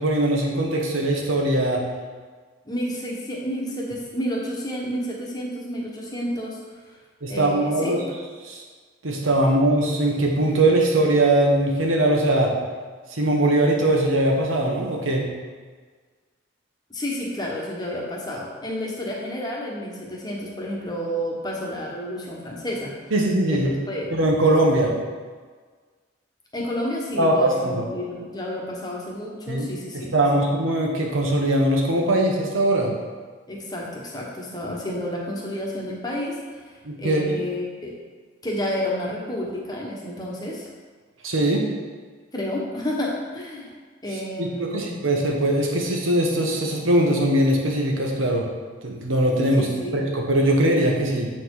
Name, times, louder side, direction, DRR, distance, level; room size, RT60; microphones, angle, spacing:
voice 1, 0.0-1.8 7.2-8.0 8.5-8.6 9.0-12.5 13.1-15.2 23.1-23.7 24.1-25.0 27.2-27.8 29.5-29.7 29.9-32.9 36.8-37.3 41.2-41.7 44.4-48.5 48.8-49.7 49.9-51.3, right 1 dB, 85° right, 0 dB, 1.3 m, -21 dB
voice 2, 2.6-6.6 6.8-7.0 7.3-8.0 16.9-23.1 23.5-24.1 26.5-30.2 33.5-37.9 38.4-40.7 42.3-43.7 44.0-45.0 49.6-50.0, equal, 20° left, -3 dB, 1.2 m, -30 dB
7.7 x 4.4 x 4.8 m, 1.5 s
head